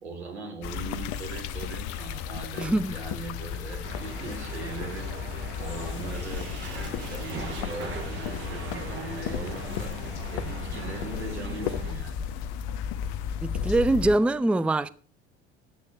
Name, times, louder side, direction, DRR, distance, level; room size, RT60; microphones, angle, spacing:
voice 1, 0.0-5.1 5.6-12.2, right 3 dB, 80° right, 3.4 m, -40 dB
sound 1, 0.6-14.2, left 8 dB, 55° left, 1.1 m, -34 dB
voice 2, 2.6-3.0 13.4-14.9, right 2 dB, 5° right, 0.5 m, -23 dB
Fire, 2.8-12.0, right 3 dB, 55° right, 6.7 m, -50 dB
sound 2, 3.8-11.9, right 4 dB, 40° right, 4.7 m, -40 dB
11.0 x 8.7 x 7.0 m
figure-of-eight pair, 65°, 33 cm